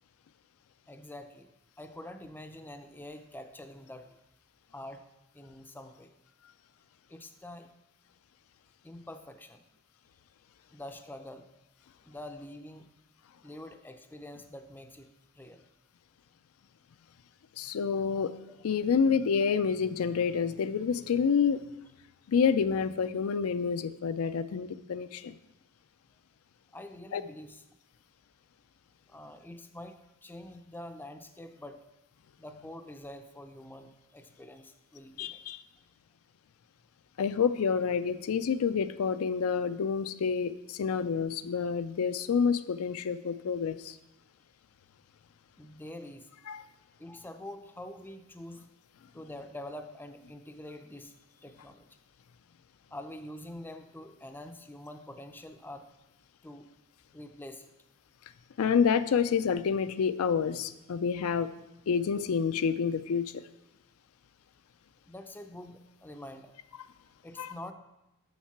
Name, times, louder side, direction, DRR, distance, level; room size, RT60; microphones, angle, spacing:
voice 1, 0.9-1.5 1.8-4.2 4.7-5.0 5.3-6.1 7.1-7.7 8.8-9.6 10.7-11.5 12.0-12.9 13.4-15.1 15.3-15.6 18.5-18.6 26.7-27.6 29.1-31.8 32.4-35.4 45.6-46.3 47.0-48.7 49.1-51.9 52.9-55.9 56.4-56.7 57.1-57.7 65.1-66.5 67.2-67.7, left 1 dB, 10° left, 7 dB, 0.5 m, -46 dB
voice 2, 17.6-18.3 18.6-21.6 22.3-25.4 27.1-27.2 35.2-35.6 37.2-44.0 46.5-46.6 58.6-61.5 61.9-63.3 67.4-67.5, left 6 dB, 70° left, 11 dB, 0.4 m, -28 dB
7.2 x 6.6 x 5.9 m, 0.92 s
head